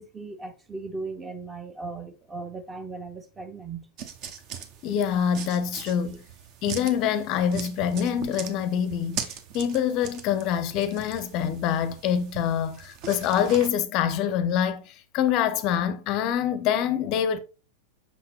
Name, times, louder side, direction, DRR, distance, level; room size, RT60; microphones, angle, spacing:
voice 1, 0.0-3.9, right 3 dB, 15° right, 0.8 m, -37 dB
sound 1, 4.0-13.7, right 7 dB, 40° right, 1.0 m, -40 dB
voice 2, 4.8-6.2 6.6-9.2 9.5-14.8 15.1-17.4, left 9 dB, 40° left, 0.6 m, -25 dB
6.0 x 5.8 x 2.9 m
figure-of-eight pair, 90°, 0 cm